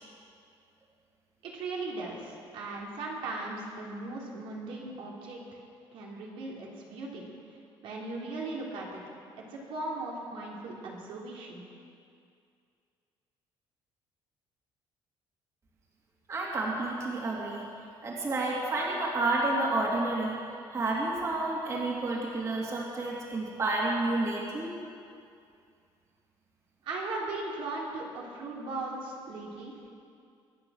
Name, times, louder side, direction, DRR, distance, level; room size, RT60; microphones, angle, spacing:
voice 1, 1.4-5.6 5.9-7.3 7.8-9.0 9.4-11.6 26.8-29.9, right 2 dB, 75° right, -3 dB, 3.4 m, -38 dB
voice 2, 16.3-17.7 18.0-20.4 20.7-24.7, right 2 dB, 35° right, -3 dB, 2.7 m, -30 dB
24.0 x 9.0 x 6.5 m, 2.4 s
cardioid pair, 155°, 9 cm